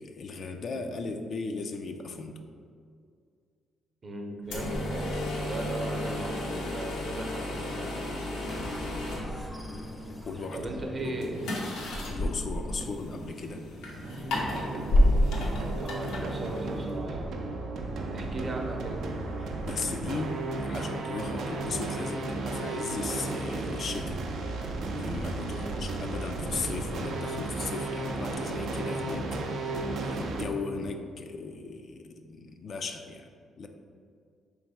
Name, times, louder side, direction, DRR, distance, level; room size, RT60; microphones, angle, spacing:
voice 1, 0.0-2.4 10.3-11.5 12.1-13.6 19.4-24.2 24.9-33.3 33.6-33.7, left 4 dB, 55° left, 5 dB, 0.4 m, -37 dB
voice 2, 4.0-8.6 10.5-11.5 15.8-17.3 18.1-19.1 25.5-25.8, right 2 dB, 40° right, 2 dB, 0.7 m, -38 dB
sound 1, 4.4-17.0, left 1 dB, 90° left, 0.9 m, -31 dB
sound 2, 8.5-11.9, equal, 5° left, 0.6 m, -44 dB
sound 3, 14.0-30.4, right 2 dB, 75° right, 0.5 m, -34 dB
3.4 x 3.1 x 4.7 m, 2.2 s
cardioid pair, 90°, 0 cm